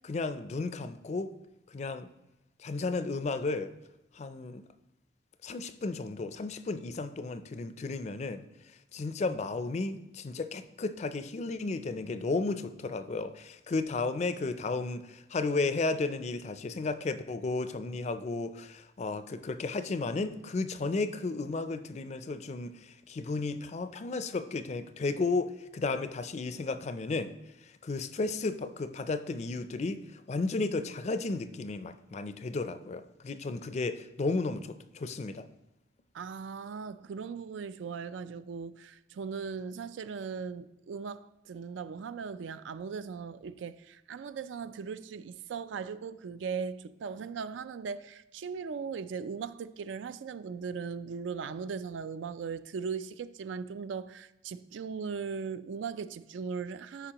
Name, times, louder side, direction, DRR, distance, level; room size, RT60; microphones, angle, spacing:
voice 1, 0.0-1.3 1.7-2.1 2.6-3.7 4.1-4.6 5.4-8.4 8.9-27.3 27.8-35.5, left 3 dB, 35° left, 0.4 m, -33 dB
voice 2, 36.1-57.1, right 5 dB, 80° right, 0.4 m, -38 dB
13.0 x 5.0 x 2.9 m
head